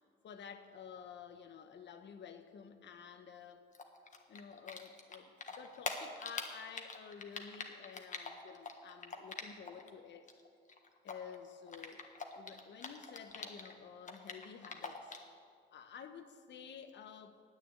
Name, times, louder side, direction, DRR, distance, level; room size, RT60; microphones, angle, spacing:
voice 1, 0.2-3.6 4.3-10.3 11.0-12.1 12.3-15.1 15.7-17.4, left 7 dB, 60° left, 1.1 m, -51 dB
Typing, 3.7-9.9 10.1-13.7 14.0-15.3, left 4 dB, 40° left, 1.4 m, -44 dB
9.7 x 8.8 x 8.9 m
cardioid pair, 90°, 20 cm